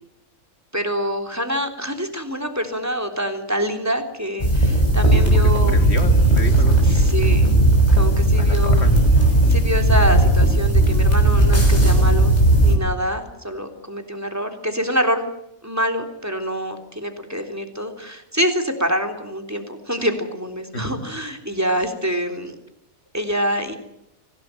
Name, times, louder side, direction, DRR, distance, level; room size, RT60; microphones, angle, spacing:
voice 1, 0.7-5.8 6.8-7.5 7.9-8.9 9.5-15.2 15.6-22.6 23.1-23.8, equal, 10° right, 6 dB, 3.5 m, -26 dB
sound 1, 4.4-12.8, right 1 dB, 30° left, 6.4 m, -16 dB
voice 2, 5.3-7.0 8.4-8.9 20.7-21.0, left 1 dB, 50° left, 6 dB, 3.2 m, -31 dB
25.0 x 17.5 x 9.1 m, 0.81 s
omnidirectional pair, 1.4 m